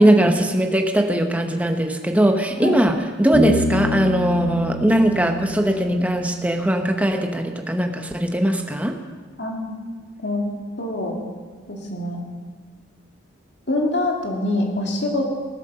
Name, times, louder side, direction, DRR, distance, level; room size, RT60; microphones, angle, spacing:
voice 1, 0.0-9.0, right 1 dB, 5° right, 5 dB, 0.9 m, -20 dB
Bass guitar, 3.3-6.8, left 1 dB, 30° left, 1.8 m, -26 dB
voice 2, 9.4-9.7 10.2-10.5 10.8-11.1 11.7-12.2 13.7-15.3, left 2 dB, 60° left, 0 dB, 2.4 m, -24 dB
18.0 x 8.0 x 6.8 m, 1.5 s
head